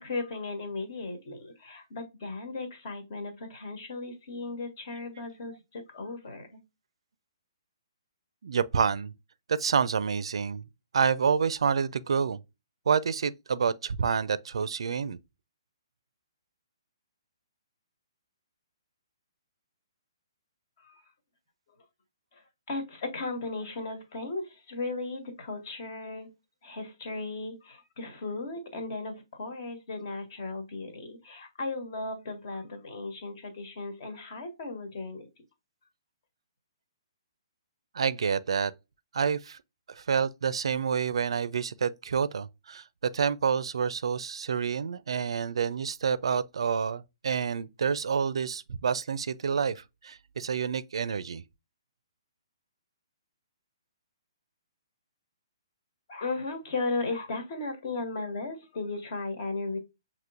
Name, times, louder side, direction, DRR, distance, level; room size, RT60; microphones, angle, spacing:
voice 1, 0.0-6.6 20.8-21.0 22.7-26.3 26.6-35.3 56.1-59.8, left 3 dB, 50° left, 1.4 m, -36 dB
voice 2, 8.4-9.1 9.5-10.6 10.9-12.4 12.9-15.2 37.9-38.7 39.1-39.6 39.9-42.8 43.1-51.4, right 6 dB, 80° right, 0.4 m, -28 dB
6.0 x 3.0 x 2.5 m
hypercardioid pair, 160°, 3 cm